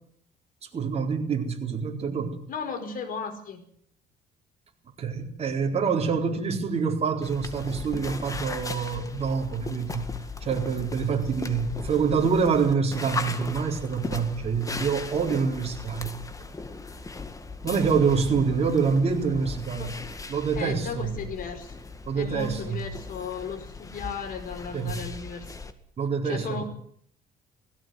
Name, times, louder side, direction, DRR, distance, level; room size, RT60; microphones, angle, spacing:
voice 1, 0.6-2.4 5.0-10.1 10.4-16.2 17.6-19.9 20.3-21.1 22.0-22.8 24.7-25.0 26.0-26.6, right 5 dB, 40° right, 2 dB, 4.5 m, -26 dB
voice 2, 2.5-3.6 19.8-20.3 20.6-21.7 22.1-25.5 26.2-26.6, left 5 dB, 55° left, 7 dB, 5.1 m, -35 dB
sound 1, 7.2-25.7, left 3 dB, 20° left, 2.0 m, -38 dB
18.0 x 16.5 x 9.6 m, 0.65 s
cardioid pair, 110°, 17 cm